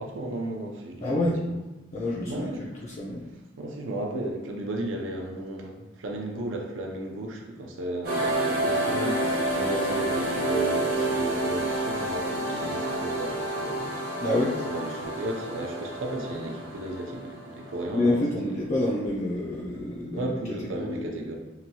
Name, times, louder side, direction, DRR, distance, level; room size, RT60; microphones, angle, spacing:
voice 1, 0.0-1.6 2.3-2.7 3.6-14.2 14.7-18.2 20.1-21.3, right 1 dB, 80° right, 1 dB, 0.5 m, -34 dB
voice 2, 1.0-1.3 1.9-3.2 14.2-14.5 17.9-20.3 20.7-21.0, left 1 dB, 35° left, -4 dB, 0.4 m, -27 dB
sound 1, 8.0-18.4, right 1 dB, 50° right, 0.9 m, -29 dB
2.8 x 2.2 x 2.8 m, 1.1 s
head